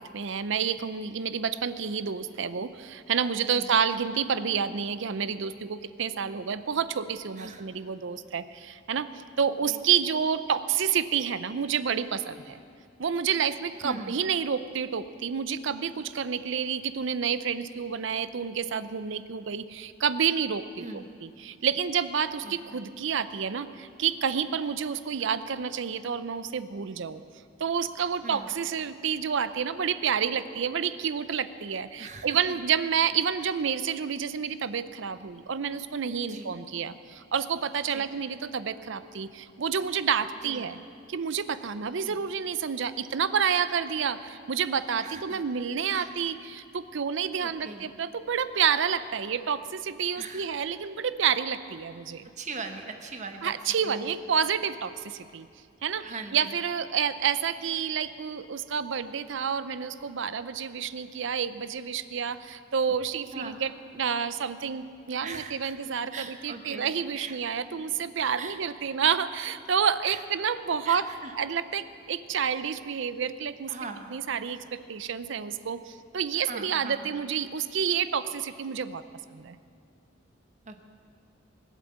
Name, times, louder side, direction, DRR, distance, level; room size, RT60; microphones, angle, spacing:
voice 1, 0.0-12.6 13.0-27.2 27.6-40.8 41.1-52.3 53.4-55.5 55.8-71.1 71.4-73.7 74.1-79.0 79.3-79.6, right 7 dB, 65° right, 13 dB, 0.6 m, -29 dB
voice 2, 13.8-14.1 20.8-21.0 22.4-22.8 28.2-28.5 32.0-32.5 36.3-36.5 37.9-38.1 40.4-40.6 42.0-42.2 45.0-45.4 45.9-46.1 47.4-47.8 50.2-50.5 52.4-53.5 53.8-54.1 56.0-56.6 63.3-63.6 65.2-65.7 66.1-67.4 68.4-68.6 70.0-70.2 70.8-71.3 72.4-72.5 73.7-74.1 76.3-77.1 80.7-80.8, right 3 dB, 40° right, 5 dB, 1.1 m, -41 dB
19.5 x 8.3 x 7.5 m, 2.3 s
head